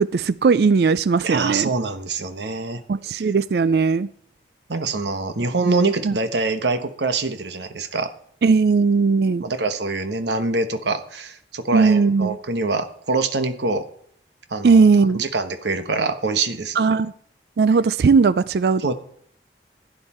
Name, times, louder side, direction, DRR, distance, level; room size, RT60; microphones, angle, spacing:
voice 1, 0.0-1.7 2.9-4.1 6.0-6.1 8.4-9.4 11.7-12.4 14.6-15.2 16.8-17.1 17.6-18.9, right 4 dB, 65° right, 0.4 m, -18 dB
voice 2, 1.2-2.8 3.1-3.3 4.7-8.1 9.4-13.8 14.5-14.9 15.1-16.8 18.8-18.9, right 3 dB, 80° right, 1.1 m, -24 dB
15.5 x 9.7 x 4.3 m
head